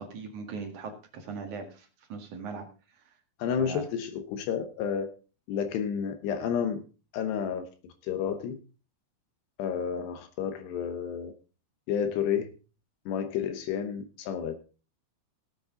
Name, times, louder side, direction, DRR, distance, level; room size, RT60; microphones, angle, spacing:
voice 1, 0.0-2.7 2.9-3.1 3.6-3.8, right 5 dB, 55° right, 3 dB, 2.7 m, -40 dB
voice 2, 3.4-5.1 5.5-6.8 7.1-7.7 8.0-8.6 9.6-11.3 11.9-12.5 13.1-14.6, left 8 dB, 75° left, 8 dB, 2.9 m, -30 dB
17.5 x 8.4 x 3.8 m, 0.34 s
omnidirectional pair, 5.4 m